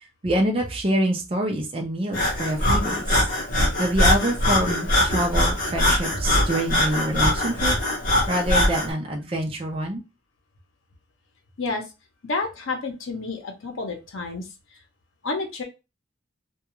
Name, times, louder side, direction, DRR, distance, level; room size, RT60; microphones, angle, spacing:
voice 1, 0.2-3.2 3.8-7.8 8.3-10.0, right 1 dB, 30° right, 1 dB, 0.4 m, -26 dB
Breathing, 2.1-8.9, left 1 dB, 45° left, 0.8 m, -22 dB
voice 2, 12.2-14.5 15.2-15.6, left 3 dB, 75° left, 3 dB, 0.7 m, -29 dB
2.3 x 2.3 x 2.9 m, 0.26 s
head